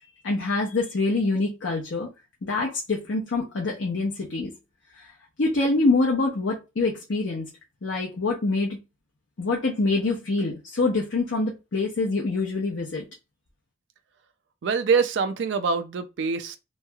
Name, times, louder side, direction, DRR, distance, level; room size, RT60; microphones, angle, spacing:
voice 1, 0.2-2.1 2.4-4.5 5.0-5.1 5.4-7.5 7.8-8.8 9.4-13.0, left 3 dB, 75° left, 0.7 m, -25 dB
voice 2, 14.6-16.6, right 5 dB, 65° right, 0.4 m, -24 dB
3.1 x 2.7 x 2.3 m
head